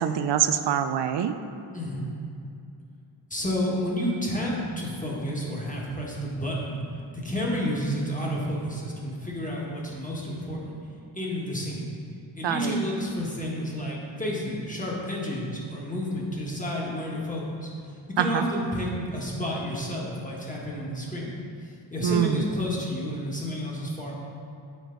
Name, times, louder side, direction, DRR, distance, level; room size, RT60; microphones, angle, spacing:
voice 1, 0.0-1.4 12.4-12.8 18.2-18.5 22.0-22.4, right 9 dB, 60° right, 9 dB, 0.5 m, -24 dB
voice 2, 1.7-2.1 3.3-6.7 7.1-10.8 11.1-11.9 12.3-17.7 18.1-21.3 21.9-24.1, equal, 15° left, -4 dB, 1.5 m, -30 dB
8.0 x 4.5 x 3.9 m, 2.5 s
cardioid pair, 55°, 47 cm